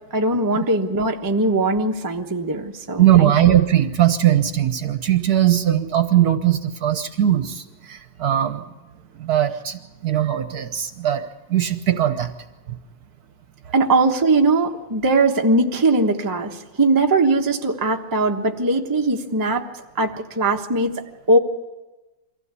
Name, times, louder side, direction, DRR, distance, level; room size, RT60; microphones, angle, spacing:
voice 1, 0.1-3.3 13.7-19.7 19.9-21.4, right 2 dB, 15° right, 2 dB, 0.9 m, -20 dB
voice 2, 3.0-8.6 9.1-11.2 11.5-12.3 12.7-12.8, right 11 dB, 55° right, 9 dB, 1.4 m, -19 dB
23.5 x 15.5 x 8.3 m, 1.1 s
omnidirectional pair, 2.1 m